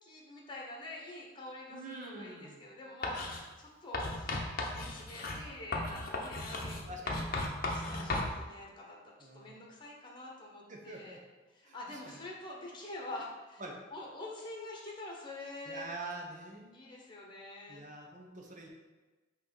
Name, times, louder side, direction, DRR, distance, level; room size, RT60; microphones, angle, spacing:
voice 1, 0.0-6.9 7.6-11.2 11.5-13.6 13.9-15.8 16.7-17.8, left 2 dB, 25° left, -2 dB, 1.1 m, -46 dB
voice 2, 1.7-2.6 6.9-7.3 9.2-9.6 10.7-11.2 11.6-12.2 13.6-13.8 15.7-16.9 17.7-18.7, right 2 dB, 40° right, 1 dB, 1.0 m, -45 dB
Writing, 3.0-3.4 3.9-8.3, left 2 dB, 50° left, 0.8 m, -36 dB
5.9 x 3.2 x 5.4 m, 1.2 s
head